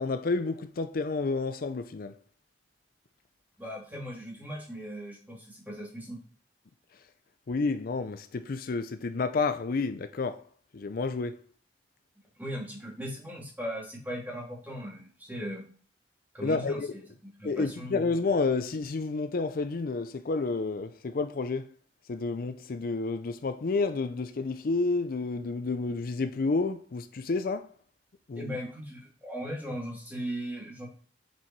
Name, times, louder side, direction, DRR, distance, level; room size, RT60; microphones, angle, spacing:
voice 1, 0.0-2.1 7.5-10.4 10.7-11.4 16.4-16.9 17.4-21.7 22.1-27.7 28.3-28.6, left 3 dB, 55° left, 0.5 m, -30 dB
voice 2, 3.6-6.2 12.4-15.6 16.3-18.0 28.4-30.9, equal, 10° right, 2.7 m, -38 dB
6.8 x 4.6 x 4.5 m
head